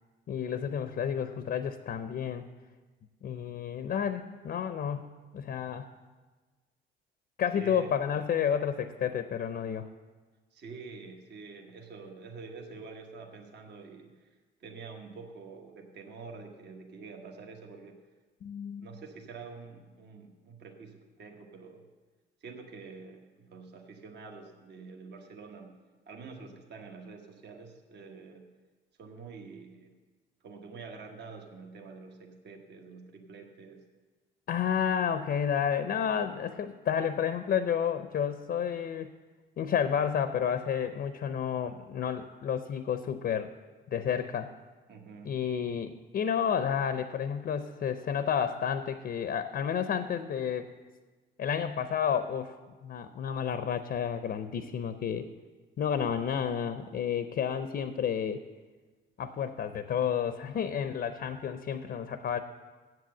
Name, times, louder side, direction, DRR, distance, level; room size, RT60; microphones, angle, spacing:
voice 1, 0.3-2.5 3.2-5.1 5.3-5.9 7.4-9.9 18.4-18.9 34.5-39.1 39.6-43.5 43.9-44.5 45.2-50.7 51.4-52.6 52.8-55.3 55.8-58.4 59.2-62.4, left 8 dB, 55° left, 10 dB, 0.6 m, -31 dB
voice 2, 7.5-7.9 10.5-14.3 14.6-18.0 18.8-21.8 22.4-25.7 26.1-28.5 29.0-29.9 30.4-33.8 44.9-45.3, right 4 dB, 60° right, 3 dB, 1.1 m, -47 dB
7.7 x 7.7 x 7.6 m, 1.3 s
cardioid pair, 90°, 20 cm